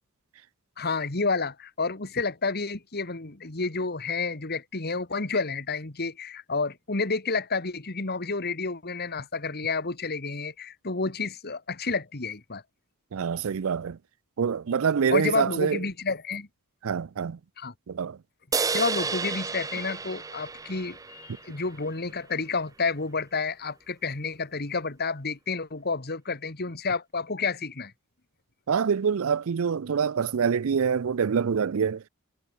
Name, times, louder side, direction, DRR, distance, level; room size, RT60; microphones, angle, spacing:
voice 1, 0.8-12.6 15.1-16.5 17.6-17.7 18.5-27.9, left 4 dB, 45° left, 1.7 m, -30 dB
voice 2, 13.1-14.0 14.4-15.8 16.8-17.4 17.9-18.2 28.7-32.1, right 6 dB, 65° right, 0.4 m, -25 dB
sound 1, 18.5-22.0, right 4 dB, 15° right, 0.6 m, -31 dB
head